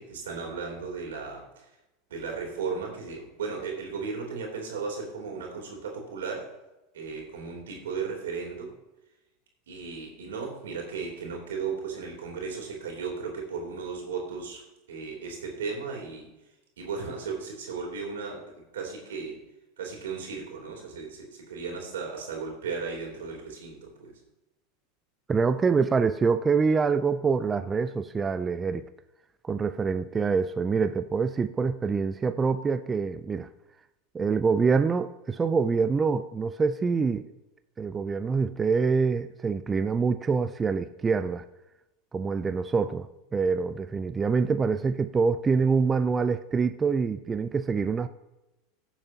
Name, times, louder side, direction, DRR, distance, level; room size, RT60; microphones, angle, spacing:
voice 1, 0.0-1.7 2.1-6.5 6.9-8.7 9.7-16.3 16.8-18.4 18.7-19.4 19.8-24.1, right 5 dB, 85° right, 0 dB, 3.1 m, -35 dB
voice 2, 25.3-28.9 29.4-33.5 34.1-37.3 37.8-41.4 42.1-48.1, right 5 dB, 20° right, 11 dB, 0.4 m, -25 dB
15.5 x 7.1 x 2.8 m, 0.97 s
hypercardioid pair, 100°, 0 cm